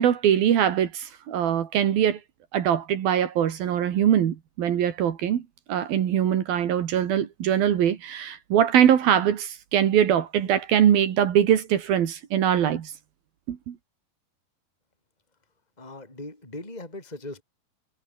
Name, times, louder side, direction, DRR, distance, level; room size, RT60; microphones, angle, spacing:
voice 1, 0.0-2.2 2.5-5.4 5.7-12.9 13.5-13.8, right 9 dB, 70° right, 3.7 m, -22 dB
voice 2, 15.8-17.4, left 2 dB, 10° left, 5.2 m, -39 dB
omnidirectional pair, 4.4 m